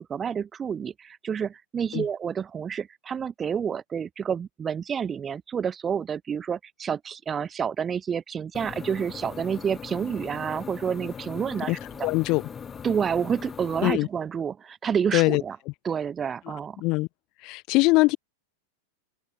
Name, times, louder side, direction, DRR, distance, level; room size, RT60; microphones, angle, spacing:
voice 1, 0.0-12.1 12.8-15.6 15.8-16.8, right 7 dB, 20° right, 2.4 m, -29 dB
sound 1, 8.5-13.9, left 6 dB, 20° left, 3.0 m, -40 dB
voice 2, 11.7-12.4 13.8-14.1 15.1-15.4 16.8-17.1 17.4-18.2, left 24 dB, 40° left, 0.6 m, -22 dB
open air
figure-of-eight pair, 90°, 0 cm